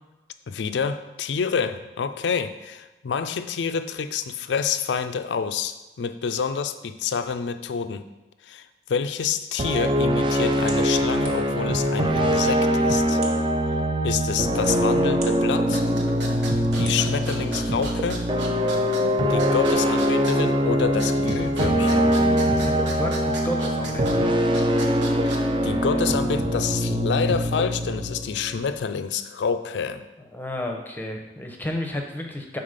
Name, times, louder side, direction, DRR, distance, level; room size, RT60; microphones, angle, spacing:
voice 1, 0.5-8.0 8.4-13.2 14.0-15.8 16.8-18.2 19.3-22.1 25.2-30.1, left 6 dB, 90° left, 10 dB, 0.4 m, -28 dB
Gulped Opus, 9.6-28.8, equal, 30° right, 0.4 m, -23 dB
sound 1, 10.7-11.7 12.4-12.5 13.1-13.5 14.2-15.3 15.8-15.9 16.7-17.0, right 3 dB, 60° right, 1.1 m, -39 dB
sound 2, 15.6-25.7, right 2 dB, 85° right, 0.9 m, -36 dB
voice 2, 22.6-24.4 30.3-32.6, left 1 dB, 10° left, 2 dB, 0.7 m, -32 dB
5.7 x 4.0 x 5.1 m, 1.1 s
head